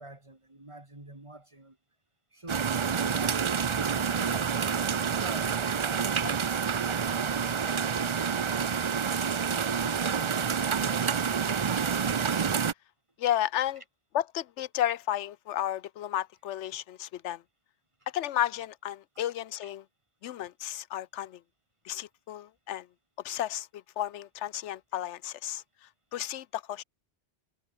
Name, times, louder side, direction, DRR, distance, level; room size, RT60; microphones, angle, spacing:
voice 1, 0.0-1.8 2.3-4.6 5.2-6.5 7.0-9.0 9.5-11.5 19.1-19.2, right 2 dB, 25° right, 3.2 m, -45 dB
sound 1, 2.5-12.7, right 6 dB, 40° right, 0.4 m, -28 dB
voice 2, 13.2-13.8 14.1-17.4 18.1-19.8 20.2-21.4 21.8-22.9 23.2-25.6 26.1-26.8, left 12 dB, 80° left, 1.0 m, -32 dB
omnidirectional pair, 1.2 m